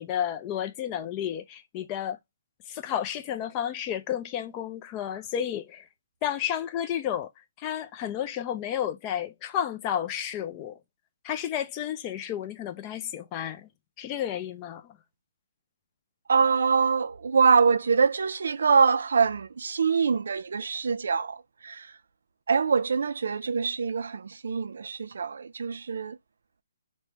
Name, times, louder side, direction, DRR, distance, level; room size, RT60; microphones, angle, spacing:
voice 1, 0.0-2.2 2.7-5.8 6.2-7.3 7.6-10.8 11.2-13.7 14.0-15.0, left 10 dB, 25° left, 0.4 m, -31 dB
voice 2, 16.3-21.9 22.5-26.2, right 5 dB, 70° right, 0.3 m, -24 dB
3.2 x 2.2 x 2.8 m
hypercardioid pair, 150°, 0 cm